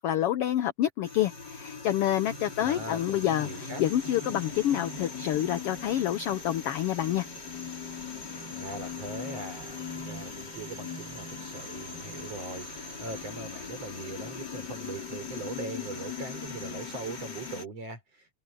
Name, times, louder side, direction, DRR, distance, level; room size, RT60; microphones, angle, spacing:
voice 1, 0.0-7.3, left 12 dB, 75° left, 1.4 m, -28 dB
sound 1, 1.0-17.7, left 5 dB, 35° left, 4.2 m, -40 dB
voice 2, 2.6-3.8 8.5-18.3, right 3 dB, 55° right, 6.4 m, -41 dB
omnidirectional pair, 3.4 m